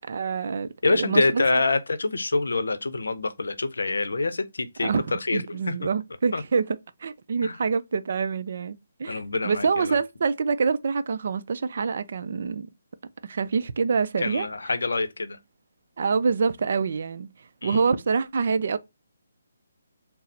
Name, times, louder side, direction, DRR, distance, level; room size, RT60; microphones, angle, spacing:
voice 1, 0.0-1.4 4.8-12.7 13.2-14.5 16.0-18.8, right 5 dB, 55° right, 0.4 m, -26 dB
voice 2, 0.8-5.7 6.3-6.4 7.4-7.6 9.1-10.0 14.2-15.4 17.6-17.9, left 3 dB, 80° left, 0.6 m, -26 dB
4.0 x 2.0 x 4.0 m
hypercardioid pair, 155°, 0 cm